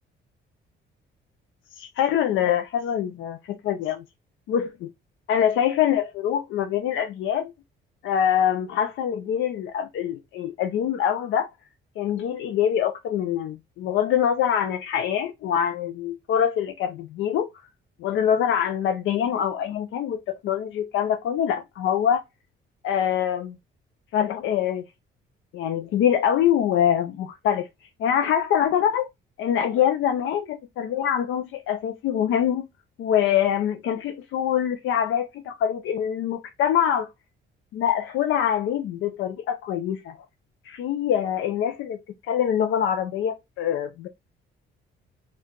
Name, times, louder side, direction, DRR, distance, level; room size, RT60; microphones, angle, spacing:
voice 1, 1.8-4.0 4.5-4.9 5.3-7.5 8.0-11.5 12.0-17.5 18.0-22.2 22.8-23.6 24.1-24.9 25.5-27.7 28.0-29.1 29.4-32.7 33.0-37.1 37.7-40.2 40.7-42.0 42.3-44.1, left 9 dB, 75° left, 0.5 m, -24 dB
4.5 x 2.4 x 3.7 m
cardioid pair, 145°, 20 cm